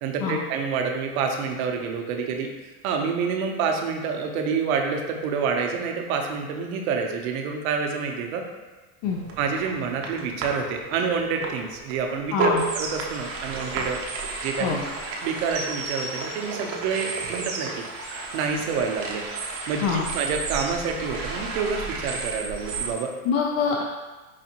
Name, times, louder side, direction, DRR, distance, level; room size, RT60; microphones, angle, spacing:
voice 1, 0.0-2.5 2.8-8.4 9.4-14.0 14.4-14.9 15.2-17.8 18.3-19.2 19.7-23.1, right 5 dB, 65° right, 3 dB, 0.7 m, -28 dB
Fairy ice whales, 9.0-22.9, right 3 dB, 30° right, 0.6 m, -32 dB
voice 2, 12.3-12.6 14.6-14.8 19.8-20.1 23.3-23.8, left 6 dB, 50° left, -1 dB, 0.4 m, -24 dB
4.8 x 2.5 x 2.8 m, 1.2 s
supercardioid pair, 125°, 45 cm